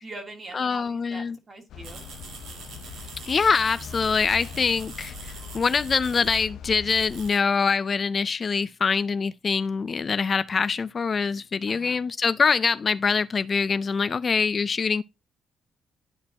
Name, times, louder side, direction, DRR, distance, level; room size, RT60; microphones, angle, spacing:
voice 1, 0.0-2.0 11.7-12.0, right 2 dB, 35° right, 2.5 m, -42 dB
voice 2, 0.5-1.4 3.3-15.0, left 5 dB, 40° left, 0.3 m, -24 dB
sound 1, 1.7-7.3, left 6 dB, 75° left, 0.7 m, -41 dB
sound 2, 1.8-6.5 6.9-7.4, right 5 dB, 80° right, 1.8 m, -44 dB
12.5 x 4.6 x 2.8 m
cardioid pair, 90°, 0 cm